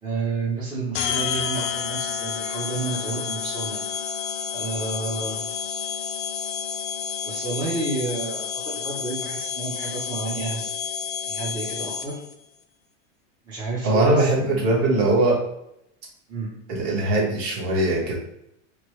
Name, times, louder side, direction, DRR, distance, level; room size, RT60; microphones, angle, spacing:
voice 1, 0.0-3.8 4.5-5.5 7.2-10.7 11.2-12.2 13.5-14.7 16.3-16.5, right 3 dB, 10° right, -7 dB, 0.5 m, -30 dB
sound 1, 0.9-12.3, left 7 dB, 70° left, 0.5 m, -30 dB
voice 2, 13.8-15.4 16.7-18.1, right 2 dB, 40° right, -3 dB, 1.0 m, -21 dB
2.9 x 2.0 x 3.0 m, 0.80 s
supercardioid pair, 145°, 37 cm